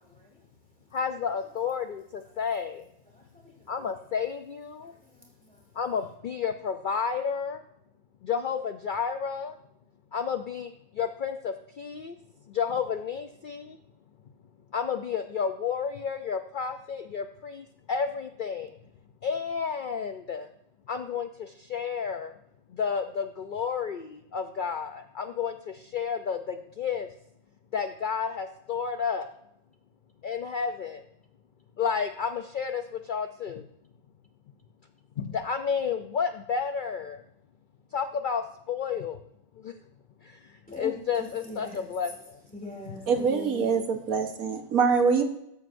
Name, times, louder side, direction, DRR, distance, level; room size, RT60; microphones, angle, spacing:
voice 1, 0.1-0.4 3.1-3.5 5.1-5.6 40.7-40.9 41.2-41.8 42.5-43.6, left 1 dB, 5° left, -2 dB, 2.6 m, -42 dB
voice 2, 0.9-2.9 3.7-4.9 5.7-7.6 8.2-9.6 10.1-12.2 12.4-13.8 14.7-18.8 19.2-20.5 20.9-22.4 22.7-27.1 27.7-29.3 30.2-31.0 31.8-33.7 35.2-37.2 37.9-39.2 39.6-39.8 40.2-42.4 42.9-43.1, left 6 dB, 75° left, 7 dB, 0.4 m, -31 dB
voice 3, 43.1-45.2, right 5 dB, 85° right, 6 dB, 1.5 m, -24 dB
14.0 x 9.1 x 2.6 m, 0.76 s
omnidirectional pair, 1.5 m